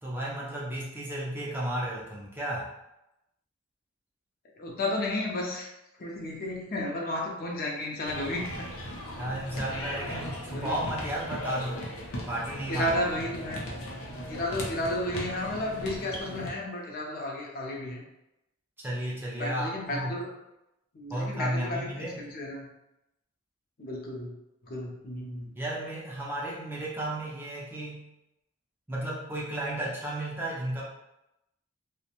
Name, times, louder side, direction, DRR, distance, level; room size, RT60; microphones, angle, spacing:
voice 1, 0.0-2.7 9.1-11.9 12.3-13.0 18.8-20.2 21.1-22.2 25.6-28.0 28.9-30.8, right 1 dB, 10° right, -5 dB, 0.4 m, -33 dB
voice 2, 4.6-5.7 6.0-8.7 9.2-9.4 10.5-10.8 12.7-13.6 14.3-18.0 19.4-20.3 20.9-22.6 23.8-25.5, left 1 dB, 45° left, -2 dB, 0.5 m, -33 dB
sound 1, 8.0-16.5, equal, 90° left, 0.6 m, -38 dB
2.5 x 2.1 x 2.8 m, 0.89 s
head